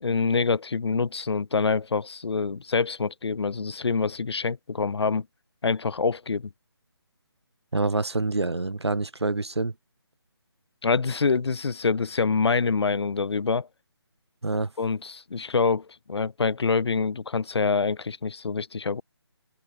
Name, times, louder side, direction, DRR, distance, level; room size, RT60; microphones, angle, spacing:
voice 1, 0.0-5.3 5.6-6.4 10.8-13.7 14.8-19.0, left 4 dB, 80° left, 0.4 m, -26 dB
voice 2, 7.7-9.7 14.4-14.7, right 3 dB, 80° right, 1.4 m, -26 dB
figure-of-eight pair, 150°, 14 cm